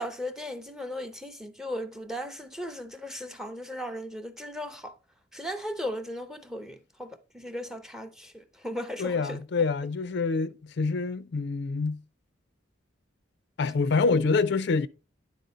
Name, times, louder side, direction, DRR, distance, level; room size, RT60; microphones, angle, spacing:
voice 1, 0.0-4.9 5.3-7.1 7.3-9.4, equal, ahead, 0.6 m, -36 dB
voice 2, 9.0-12.0 13.6-14.9, left 4 dB, 60° left, 0.4 m, -26 dB
10.5 x 4.2 x 4.0 m
head